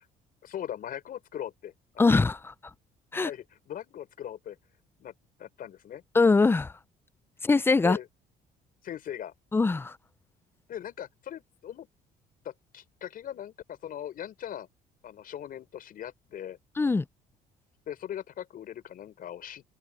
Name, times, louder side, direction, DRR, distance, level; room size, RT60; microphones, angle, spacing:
voice 1, 0.4-2.2 3.1-4.6 5.0-5.1 5.4-6.0 7.8-8.1 8.8-9.3 10.7-11.9 12.4-14.7 15.0-16.6 17.9-19.6, left 10 dB, 60° left, 5.7 m, -40 dB
voice 2, 2.0-2.5 3.1-3.3 6.1-6.7 7.4-8.0 9.5-10.0 16.8-17.0, left 3 dB, 15° left, 0.5 m, -22 dB
cardioid pair, 110°, 17 cm